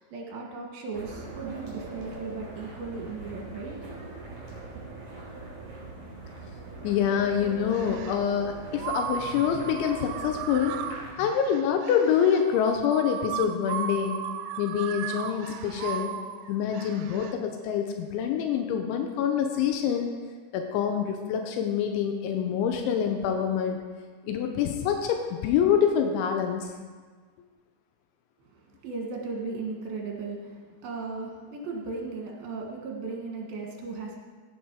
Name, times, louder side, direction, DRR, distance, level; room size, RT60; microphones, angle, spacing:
voice 1, 0.0-3.7 28.5-34.2, right 4 dB, 60° right, 0 dB, 3.3 m, -36 dB
sound 1, 0.9-11.1, right 3 dB, 35° right, 4.8 m, -42 dB
voice 2, 6.8-10.8 11.2-14.2 14.6-16.1 16.5-20.1 20.5-23.8 24.2-26.7, left 8 dB, 85° left, 4 dB, 3.2 m, -26 dB
sound 2, 7.6-8.2 8.8-17.4, right 9 dB, 85° right, 2.9 m, -36 dB
16.5 x 7.8 x 4.7 m, 1.5 s
omnidirectional pair, 5.2 m